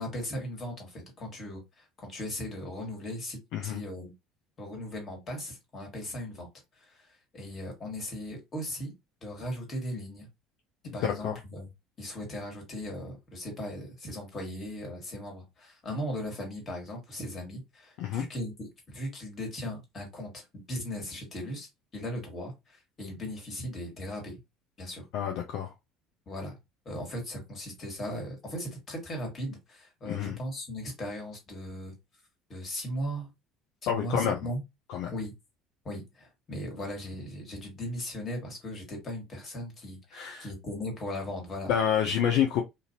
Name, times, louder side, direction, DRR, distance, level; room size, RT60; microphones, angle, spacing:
voice 1, 0.0-4.1 4.6-6.5 6.8-8.9 9.2-10.3 10.9-11.7 12.0-20.4 20.7-21.7 21.9-24.4 24.8-25.1 26.3-26.6 26.9-31.9 32.5-33.3 33.8-34.6 35.1-35.3 35.9-41.7, equal, 40° left, 1.7 m, -38 dB
voice 2, 3.5-3.8 10.8-11.3 18.0-18.2 25.1-25.7 30.1-30.4 33.9-34.3 34.9-35.1 40.1-40.5 41.7-42.6, left 8 dB, 60° left, 0.5 m, -28 dB
2.6 x 2.6 x 2.8 m
figure-of-eight pair, 60°, 0 cm